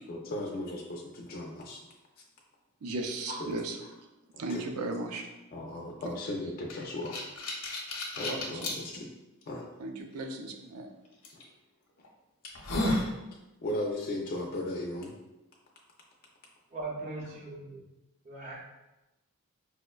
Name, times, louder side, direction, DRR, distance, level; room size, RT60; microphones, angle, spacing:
voice 1, 0.1-1.8 3.3-3.5 4.3-4.6 5.5-7.2 8.1-9.1 9.5-9.7 11.3-11.4 13.6-15.1, left 1 dB, 40° left, -2 dB, 0.4 m, -36 dB
voice 2, 2.8-3.8 4.4-5.3 8.3-8.6 9.8-10.9, right 2 dB, 80° right, 4 dB, 0.4 m, -36 dB
sound 1, 6.7-8.8 9.4-9.5 11.2-11.4 12.0-12.1 12.4-13.1, left 1 dB, 90° left, 0.7 m, -31 dB
voice 3, 16.7-17.8 18.2-18.6, right 2 dB, 35° right, -5 dB, 0.6 m, -39 dB
4.7 x 2.1 x 2.2 m, 0.99 s
head